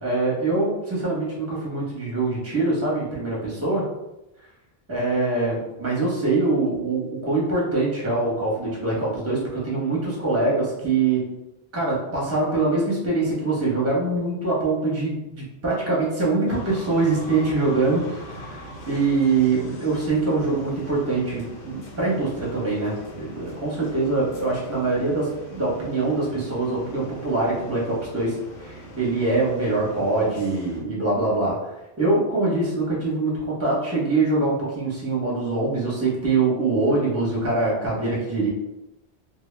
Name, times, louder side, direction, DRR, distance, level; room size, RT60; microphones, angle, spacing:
voice 1, 0.0-3.8 4.9-11.2 11.7-38.5, right 3 dB, 15° right, -5 dB, 0.7 m, -24 dB
sound 1, 16.5-30.8, right 1 dB, 85° left, 0.9 m, -41 dB
2.1 x 2.0 x 3.2 m, 0.94 s
omnidirectional pair, 1.1 m